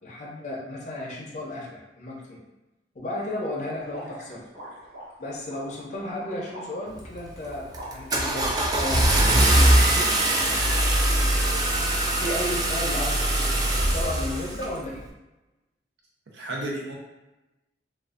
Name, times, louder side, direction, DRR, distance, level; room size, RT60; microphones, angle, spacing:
voice 1, 0.0-2.4 3.0-4.4 5.2-8.5 8.8-10.1 12.2-15.0, left 1 dB, 40° left, -4 dB, 0.5 m, -34 dB
sound 1, 3.8-8.9, equal, 45° right, 1.1 m, -43 dB
Car / Engine starting, 7.0-7.3 7.7-14.7, right 1 dB, 20° right, 0.3 m, -22 dB
voice 2, 16.3-17.0, right 1 dB, 80° right, -2 dB, 0.6 m, -34 dB
2.4 x 2.3 x 2.4 m, 1.0 s
head